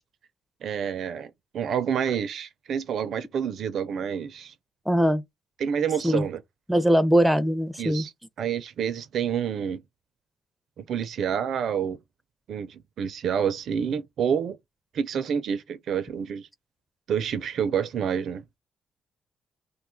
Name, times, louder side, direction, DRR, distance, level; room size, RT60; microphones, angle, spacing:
voice 1, 0.6-4.5 5.6-6.4 7.8-8.1 8.4-9.8 10.8-12.0 12.5-14.6 14.9-16.5 17.1-18.4, right 8 dB, 65° right, 0.4 m, -28 dB
voice 2, 4.9-5.2 6.0-6.2 6.7-8.0, equal, 5° right, 0.5 m, -21 dB
2.6 x 2.3 x 3.7 m
cardioid pair, 90°, 0 cm